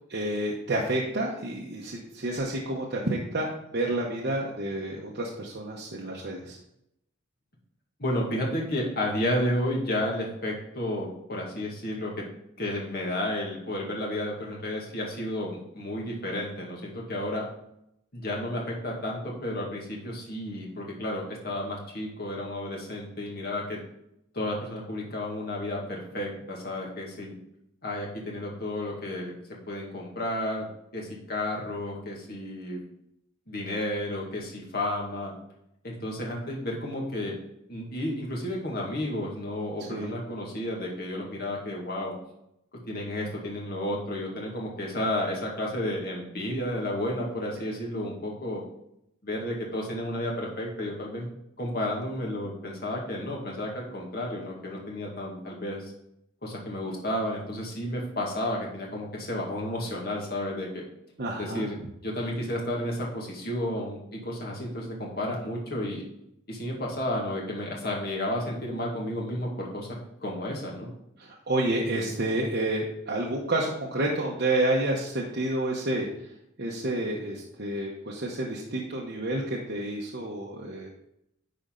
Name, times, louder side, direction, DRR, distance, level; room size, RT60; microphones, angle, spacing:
voice 1, 0.1-6.6 39.9-40.1 61.2-61.7 71.2-76.1 76.6-80.9, right 1 dB, 50° right, -3 dB, 1.0 m, -29 dB
voice 2, 8.0-12.2 12.6-17.5 18.1-23.8 24.3-27.3 27.8-29.3 29.7-30.7 30.9-32.8 33.5-35.3 35.8-37.3 37.7-42.1 42.9-48.6 49.2-51.3 51.6-55.9 56.4-60.8 61.4-61.8 62.0-66.0 66.5-70.9, left 1 dB, 50° left, -2 dB, 2.1 m, -32 dB
10.5 x 4.3 x 3.9 m, 0.79 s
head